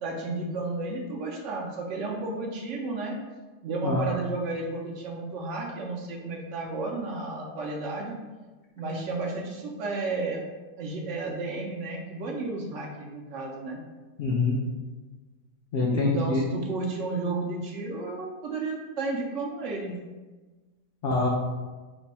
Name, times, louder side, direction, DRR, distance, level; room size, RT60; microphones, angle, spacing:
voice 1, 0.0-3.2 3.6-8.2 8.8-10.4 10.8-13.8 15.9-20.0, right 3 dB, 70° right, 0 dB, 0.8 m, -32 dB
voice 2, 14.2-14.6 15.7-16.4 21.0-21.3, left 3 dB, 60° left, -4 dB, 0.6 m, -24 dB
3.3 x 2.2 x 4.0 m, 1.3 s
omnidirectional pair, 1.4 m